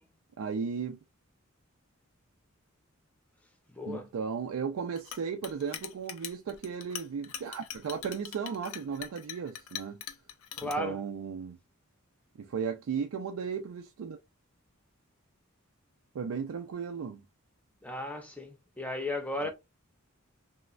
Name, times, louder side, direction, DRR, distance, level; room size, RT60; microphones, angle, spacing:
voice 1, 0.4-1.0 3.9-10.0 10.6-11.6 12.4-14.2 16.1-17.2 19.4-19.5, right 6 dB, 80° right, 0.3 m, -35 dB
voice 2, 3.7-4.1 10.6-11.0 17.8-19.5, left 1 dB, 5° left, 0.5 m, -35 dB
Chink clink, 5.0-10.7, left 10 dB, 80° left, 0.4 m, -42 dB
3.1 x 2.1 x 2.4 m
head